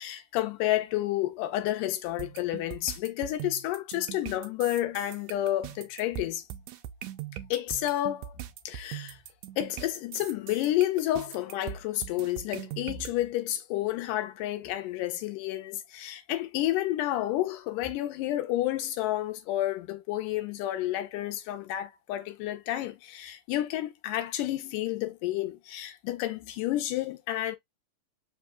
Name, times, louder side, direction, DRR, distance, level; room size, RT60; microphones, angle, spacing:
voice 1, 0.0-6.4 7.5-9.2 9.6-27.6, left 14 dB, 90° left, 2.4 m, -30 dB
sound 1, 2.2-13.1, right 12 dB, 80° right, 1.7 m, -41 dB
5.2 x 2.2 x 3.7 m
omnidirectional pair, 3.6 m